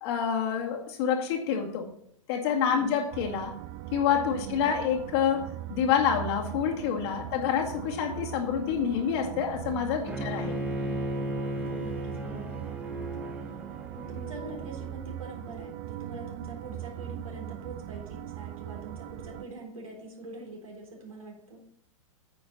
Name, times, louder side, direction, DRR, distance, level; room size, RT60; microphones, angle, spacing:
voice 1, 0.0-1.9 2.3-3.5 3.9-10.6, left 7 dB, 50° left, 2 dB, 2.0 m, -27 dB
sound 1, 3.1-19.4, right 14 dB, 40° right, 0.6 m, -40 dB
voice 2, 4.3-4.8 7.3-7.5 10.0-10.5 11.6-12.6 13.9-21.6, right 2 dB, 85° right, -1 dB, 3.8 m, -44 dB
Bowed string instrument, 10.1-15.1, equal, 10° right, 1.6 m, -35 dB
9.5 x 7.8 x 4.1 m, 0.67 s
figure-of-eight pair, 105°, 17 cm